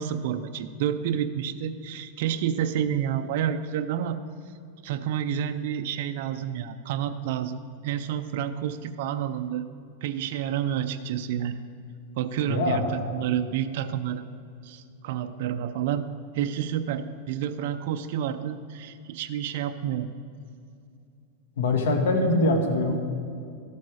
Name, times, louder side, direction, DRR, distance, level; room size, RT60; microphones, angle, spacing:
voice 1, 0.0-4.2 4.8-9.7 10.0-11.6 12.2-14.2 14.6-16.0 16.3-20.1, right 9 dB, 55° right, 8 dB, 0.5 m, -29 dB
voice 2, 12.5-12.9 21.6-22.9, left 2 dB, 85° left, 4 dB, 1.7 m, -23 dB
13.5 x 8.3 x 4.8 m, 2.4 s
supercardioid pair, 160°, 0 cm